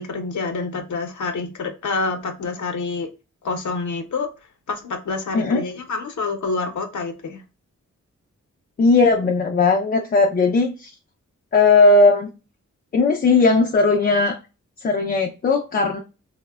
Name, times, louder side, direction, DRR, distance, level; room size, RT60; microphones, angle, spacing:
voice 1, 0.0-3.1 3.4-4.3 4.7-7.4, left 3 dB, 75° left, 0.6 m, -27 dB
voice 2, 8.8-10.9 11.5-12.3 12.9-14.4 14.8-16.0, left 3 dB, 30° left, 0.4 m, -17 dB
3.3 x 2.0 x 2.2 m
wide cardioid pair, 125°, 30 cm